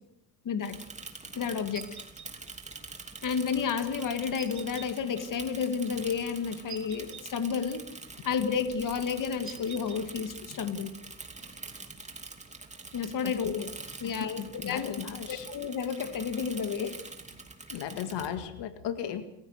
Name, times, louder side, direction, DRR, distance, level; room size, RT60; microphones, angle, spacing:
voice 1, 0.4-0.8 1.3-1.9 3.2-7.9 8.2-10.9 12.9-13.7 14.0-14.9 15.3-17.0, left 6 dB, 50° left, 9 dB, 2.1 m, -31 dB
Bicycle / Mechanisms, 0.6-18.3, right 3 dB, 15° right, 2.9 m, -45 dB
sound 1, 1.7-2.3 4.4-4.9 6.7-7.2 9.4-10.0, right 7 dB, 40° right, 2.9 m, -45 dB
voice 2, 14.0-15.5 17.7-19.3, left 9 dB, 75° left, 9 dB, 2.0 m, -36 dB
29.5 x 15.5 x 6.5 m, 0.79 s
cardioid pair, 105°, 42 cm